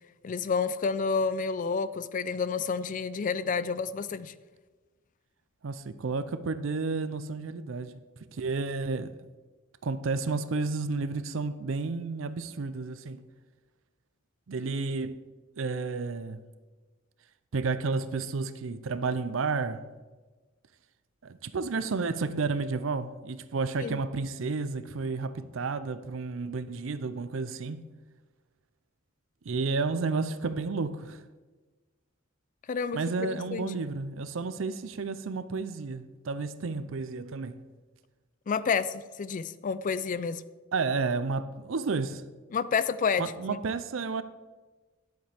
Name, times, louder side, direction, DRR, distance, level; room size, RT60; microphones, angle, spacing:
voice 1, 0.2-4.3 23.8-24.0 32.7-33.7 38.5-40.4 42.5-43.6, left 5 dB, 40° left, 0.4 m, -30 dB
voice 2, 5.6-8.0 8.3-9.1 9.8-13.2 14.5-15.2 15.6-16.4 17.5-19.9 21.2-27.8 29.5-31.2 32.9-37.6 40.7-42.2 43.2-44.2, right 4 dB, 75° right, 0.5 m, -31 dB
11.5 x 7.9 x 3.5 m
head